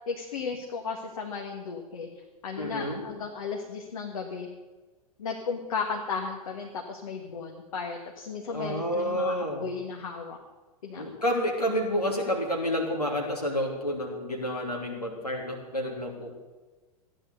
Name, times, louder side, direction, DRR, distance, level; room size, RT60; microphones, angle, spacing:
voice 1, 0.1-2.1 2.4-4.5 5.2-10.4 10.8-11.0, left 5 dB, 65° left, 1 dB, 1.7 m, -35 dB
voice 2, 2.6-3.0 8.5-9.6 10.9-16.3, equal, 85° left, 0 dB, 2.9 m, -29 dB
14.5 x 10.5 x 6.6 m, 1.3 s
figure-of-eight pair, 95°, 19 cm